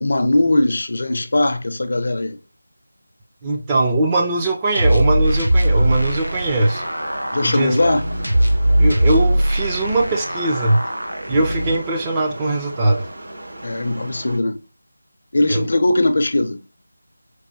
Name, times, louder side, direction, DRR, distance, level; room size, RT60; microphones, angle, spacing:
voice 1, 0.0-2.4 7.3-8.1 13.6-14.6 15.3-16.6, left 2 dB, 50° left, 0.5 m, -19 dB
voice 2, 3.4-6.9 7.4-7.8 8.8-10.8 11.3-13.1 15.5-15.7, right 2 dB, 15° right, 0.5 m, -20 dB
sound 1, 4.8-11.8, right 1 dB, 85° right, 0.8 m, -20 dB
sound 2, 5.5-14.4, right 1 dB, 55° right, 0.8 m, -37 dB
4.6 x 2.1 x 2.7 m
figure-of-eight pair, 165°, 0 cm